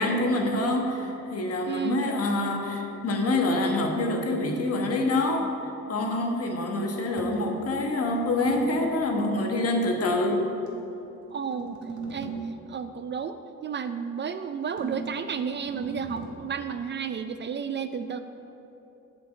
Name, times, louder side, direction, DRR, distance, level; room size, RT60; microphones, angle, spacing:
voice 1, 0.0-10.5, left 2 dB, 50° left, 2 dB, 1.3 m, -26 dB
voice 2, 1.7-2.1 11.3-11.8 12.1-12.4 12.7-18.2, right 6 dB, 40° right, 10 dB, 0.4 m, -32 dB
sound 1, 7.2-8.9 10.7-12.6 14.8-16.3, right 4 dB, 75° right, 2.0 m, -38 dB
7.5 x 5.1 x 7.3 m, 2.9 s
cardioid pair, 90°, 30 cm